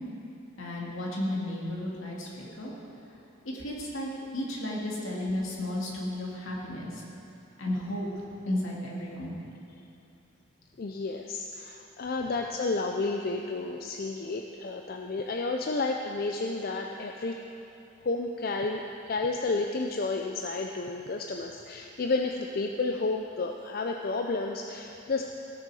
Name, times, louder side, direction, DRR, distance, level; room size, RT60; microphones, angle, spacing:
voice 1, 0.6-2.7 3.4-7.0 7.6-8.1 8.5-9.3, left 1 dB, 75° left, -3 dB, 2.1 m, -33 dB
voice 2, 10.8-17.4 18.0-18.8 19.1-25.2, left 3 dB, 45° left, 2 dB, 0.4 m, -31 dB
16.5 x 6.7 x 4.8 m, 2.8 s
head